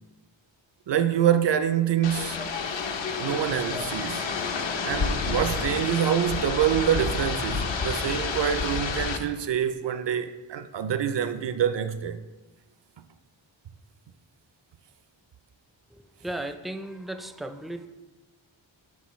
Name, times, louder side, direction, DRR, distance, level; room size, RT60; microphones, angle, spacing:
voice 1, 0.9-2.5 3.2-4.3 4.8-12.2, right 9 dB, 65° right, 0.5 m, -26 dB
sound 1, 2.0-9.2, left 5 dB, 70° left, 0.7 m, -29 dB
voice 2, 15.9-17.9, right 1 dB, ahead, 0.4 m, -36 dB
11.5 x 3.9 x 3.1 m
wide cardioid pair, 60°, 47 cm